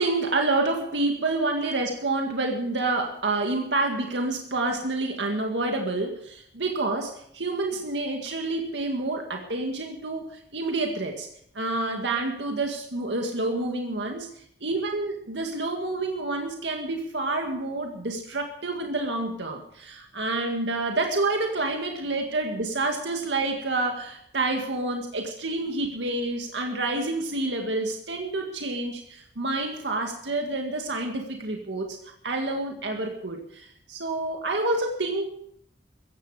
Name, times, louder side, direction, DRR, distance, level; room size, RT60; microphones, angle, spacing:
voice 1, 0.0-11.3 11.6-14.3 14.6-32.0 32.2-35.3, right 2 dB, 85° right, 2 dB, 2.0 m, -28 dB
16.0 x 15.0 x 5.0 m, 0.69 s
head